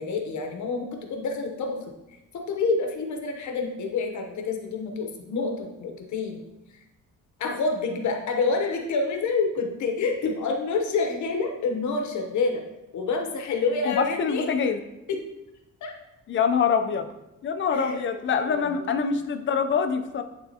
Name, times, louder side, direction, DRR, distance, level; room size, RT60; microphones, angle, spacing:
voice 1, 0.0-1.8 2.3-6.4 7.4-12.6 12.9-14.5 15.1-15.2 15.8-15.9 17.7-18.2 18.5-18.9, left 4 dB, 65° left, 3 dB, 0.9 m, -28 dB
voice 2, 13.8-14.8 16.3-17.1 17.4-20.2, left 6 dB, 40° left, 8 dB, 0.5 m, -25 dB
10.5 x 3.5 x 2.8 m, 0.95 s
cardioid pair, 175°, 32 cm